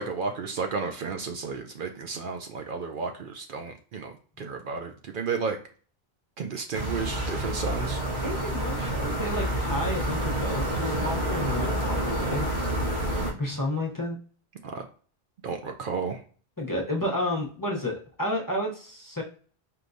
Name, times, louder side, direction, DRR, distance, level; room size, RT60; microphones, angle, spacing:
voice 1, 0.0-5.6 6.4-8.0 14.6-14.8 15.4-16.2, right 5 dB, 65° right, 5 dB, 0.7 m, -32 dB
sound 1, 6.7-13.3, right 1 dB, 85° right, 1.6 m, -28 dB
voice 2, 8.2-12.5 13.4-14.2 16.6-19.2, left 1 dB, 20° left, -2 dB, 0.7 m, -31 dB
4.6 x 3.3 x 2.6 m, 0.43 s
omnidirectional pair, 1.1 m